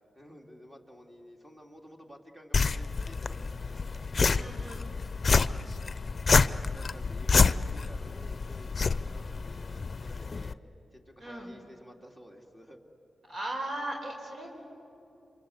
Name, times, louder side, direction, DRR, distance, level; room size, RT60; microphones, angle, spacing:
voice 1, 0.1-4.7 6.7-10.6 10.9-12.8, equal, 20° right, 1 dB, 3.0 m, -52 dB
sound 1, 2.5-10.5, left 4 dB, 45° left, 0.6 m, -28 dB
voice 2, 4.3-4.9 11.2-11.5 13.3-14.5, right 1 dB, 65° right, 0 dB, 4.7 m, -37 dB
28.5 x 25.5 x 8.2 m, 2.9 s
cardioid pair, 90°, 0 cm